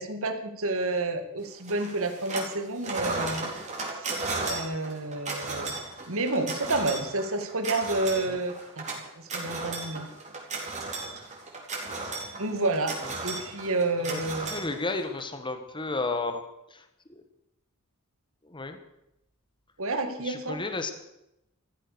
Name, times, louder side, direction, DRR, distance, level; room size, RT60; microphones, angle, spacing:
voice 1, 0.0-3.5 3.9-4.2 4.5-5.7 6.1-10.1 12.4-12.9 13.2-14.5 19.8-20.6, right 2 dB, 65° right, 7 dB, 2.2 m, -30 dB
sound 1, 1.7-2.5 2.8-15.2, right 3 dB, 35° right, 4.2 m, -35 dB
voice 2, 14.0-16.4 16.7-17.2 18.4-18.8 20.2-20.9, left 3 dB, 20° left, 7 dB, 1.4 m, -33 dB
14.5 x 14.0 x 6.8 m, 0.85 s
head